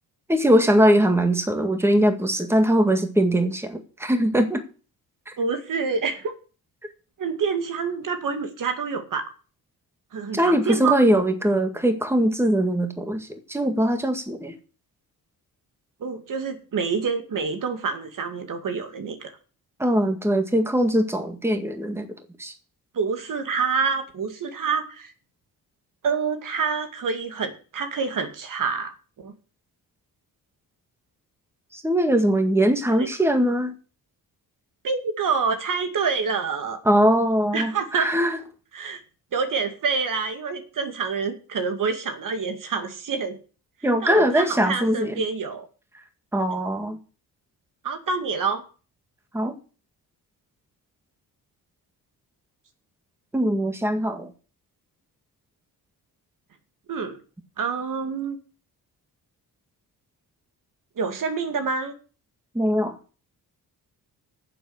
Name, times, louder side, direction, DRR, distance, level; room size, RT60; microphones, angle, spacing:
voice 1, 0.3-4.6 5.3-5.4 10.3-14.6 19.8-22.1 22.4-22.5 31.7-33.7 36.9-38.4 43.8-45.1 46.3-47.0 49.3-49.6 53.3-54.3 62.5-63.0, equal, 5° right, 6 dB, 1.9 m, -21 dB
voice 2, 5.4-6.3 7.2-9.3 10.1-11.0 16.0-19.3 22.9-25.1 26.0-29.3 33.0-33.1 34.8-36.8 37.5-38.1 38.7-39.0 39.3-43.4 44.0-45.7 47.8-48.6 56.9-57.2 57.6-58.4 61.0-61.9, right 5 dB, 55° right, 7 dB, 2.2 m, -27 dB
11.0 x 7.5 x 7.9 m, 0.37 s
cardioid pair, 120°, 37 cm